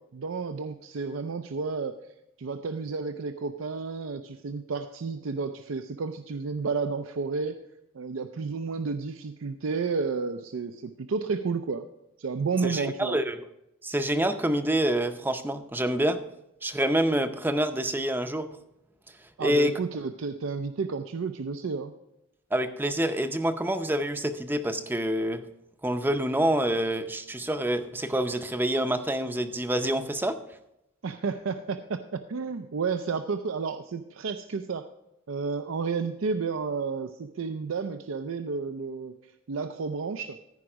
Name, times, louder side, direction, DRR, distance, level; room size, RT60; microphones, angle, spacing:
voice 1, 0.0-2.0 2.4-7.6 7.9-11.9 12.2-13.2 19.4-21.9 31.0-34.8 35.3-39.1 39.5-40.4, right 4 dB, 80° right, 8 dB, 0.5 m, -31 dB
voice 2, 12.6-13.4 13.8-16.2 16.6-18.5 19.4-19.7 22.5-25.4 25.8-30.4, right 1 dB, 10° right, 8 dB, 0.5 m, -27 dB
14.5 x 5.2 x 4.9 m, 0.85 s
head